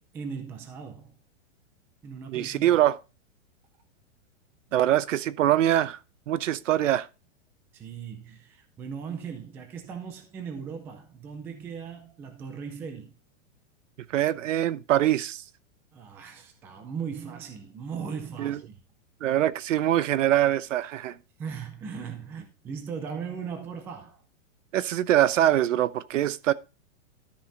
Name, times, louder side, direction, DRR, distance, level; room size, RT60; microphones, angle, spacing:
voice 1, 0.1-1.2 2.0-2.7 7.7-13.1 15.9-18.8 21.4-24.2, right 6 dB, 5° right, 0.4 m, -38 dB
voice 2, 2.3-3.0 4.7-6.0 6.3-7.1 14.1-15.4 18.4-18.6 19.2-21.2 24.7-26.5, right 12 dB, 70° right, 0.9 m, -23 dB
13.0 x 5.5 x 4.0 m
supercardioid pair, 165°, 39 cm